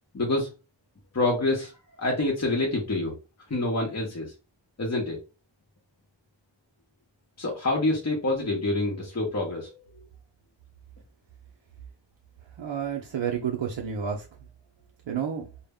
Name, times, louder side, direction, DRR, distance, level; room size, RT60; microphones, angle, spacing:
voice 1, 0.1-0.5 1.1-1.7 2.0-3.1 3.5-4.3 4.8-5.2 7.4-9.8, left 2 dB, 35° left, -1 dB, 0.7 m, -26 dB
voice 2, 12.6-14.3 15.1-15.5, right 7 dB, 75° right, 0 dB, 0.6 m, -30 dB
2.1 x 2.1 x 3.4 m, 0.30 s
wide cardioid pair, 65°, 45 cm